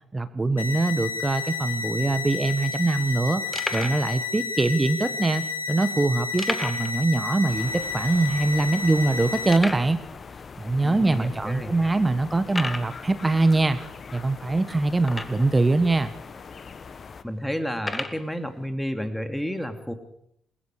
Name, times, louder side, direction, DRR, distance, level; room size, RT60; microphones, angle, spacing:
voice 1, 0.1-3.4 3.7-10.0 10.6-13.8 14.1-16.1, right 2 dB, 20° right, 11 dB, 1.5 m, -23 dB
sound 1, 0.6-9.6, left 5 dB, 85° left, 1.1 m, -31 dB
sound 2, 2.1-2.2 2.3-2.5 3.0-3.1 3.5-4.1 4.8-4.9 6.4-7.0 7.3-7.4 7.8-7.9 8.5-8.6 9.5-9.9 10.7-10.8 11.4-11.5 12.5-12.9 15.0-15.6 16.4-16.5 17.8-18.2, left 2 dB, 20° left, 2.0 m, -32 dB
sound 3, 7.5-17.2, left 5 dB, 40° left, 1.3 m, -42 dB
voice 2, 10.8-11.7 17.2-19.9, equal, 5° left, 7 dB, 3.0 m, -31 dB
28.5 x 21.0 x 5.0 m, 0.72 s
figure-of-eight pair, 40°, 0 cm